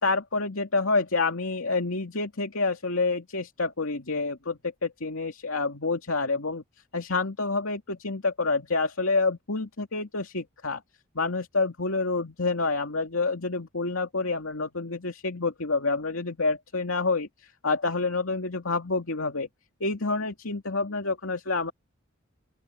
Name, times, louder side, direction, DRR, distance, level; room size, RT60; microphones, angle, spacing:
voice 1, 0.0-6.6 6.9-10.8 11.1-19.5 19.8-21.7, left 3 dB, 85° left, 2.5 m, -28 dB
open air
head